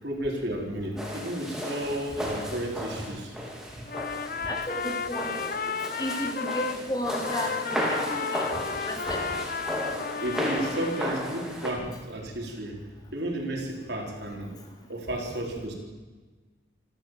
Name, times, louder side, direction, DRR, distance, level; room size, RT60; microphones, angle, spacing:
voice 1, 0.0-3.5 10.2-12.8 13.1-14.5 14.9-15.7, right 1 dB, 65° right, 1 dB, 4.6 m, -32 dB
sound 1, 1.0-11.7, equal, 5° right, 3.9 m, -34 dB
Trumpet, 3.9-6.8 7.1-11.2, left 6 dB, 45° left, 0.8 m, -33 dB
voice 2, 4.4-5.5 6.0-9.4 11.8-11.9 15.5-15.6, equal, 20° left, 1 dB, 3.5 m, -34 dB
27.0 x 13.0 x 7.9 m, 1.3 s
head